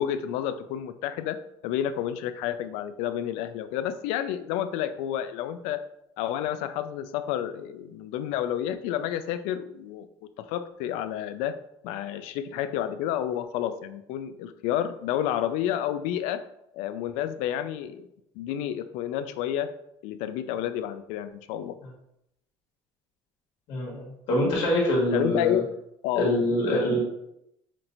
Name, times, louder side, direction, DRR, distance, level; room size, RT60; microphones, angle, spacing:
voice 1, 0.0-1.4 1.6-5.8 6.2-10.1 10.5-11.5 11.8-16.4 16.7-18.1 18.4-19.7 20.0-21.7 25.1-25.7 26.0-26.8, left 10 dB, 90° left, 11 dB, 0.4 m, -30 dB
voice 2, 23.7-25.6 26.1-27.0, equal, 50° left, -3 dB, 1.6 m, -25 dB
5.8 x 2.9 x 2.6 m, 0.79 s
cardioid pair, 180°, 11 cm